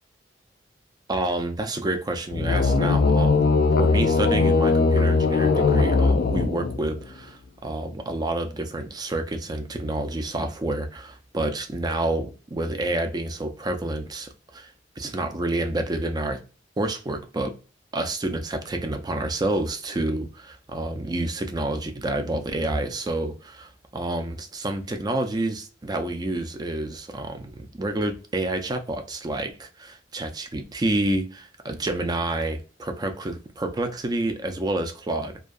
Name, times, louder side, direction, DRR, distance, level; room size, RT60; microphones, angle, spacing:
voice 1, 1.1-3.5 3.8-14.7 15.0-16.4 16.8-17.5 17.9-35.4, right 2 dB, 20° right, 0.4 m, -28 dB
sound 1, 2.3-7.0, left 4 dB, 55° left, 0.4 m, -20 dB
2.3 x 2.3 x 2.5 m
head